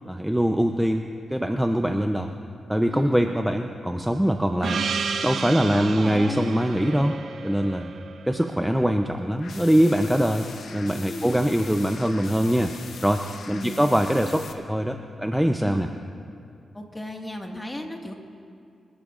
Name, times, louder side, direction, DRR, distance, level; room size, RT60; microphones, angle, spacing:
voice 1, 0.0-2.3 2.7-4.8 5.2-7.2 7.4-7.9 8.3-12.7 13.0-15.9, equal, 5° right, 5 dB, 0.7 m, -23 dB
voice 2, 2.9-3.3 5.7-6.5 11.1-11.5 13.5-13.8 15.6-15.9 16.7-18.1, left 1 dB, 15° left, 2 dB, 1.9 m, -34 dB
Gong, 4.6-9.4, right 5 dB, 75° right, 0.9 m, -32 dB
sound 1, 9.4-14.5, left 5 dB, 75° left, 0.9 m, -42 dB
27.5 x 12.0 x 2.6 m, 2.4 s
cardioid pair, 65°, 0 cm